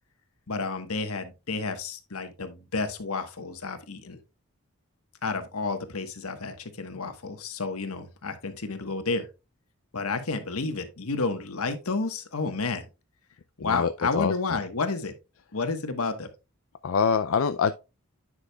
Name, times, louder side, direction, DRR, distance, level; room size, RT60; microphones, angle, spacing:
voice 1, 0.5-4.2 5.2-9.3 9.9-12.8 13.6-15.1 15.5-16.3, left 3 dB, 80° left, 1.3 m, -31 dB
voice 2, 13.6-14.3 16.8-17.7, left 6 dB, 65° left, 0.4 m, -25 dB
9.8 x 6.2 x 2.3 m
head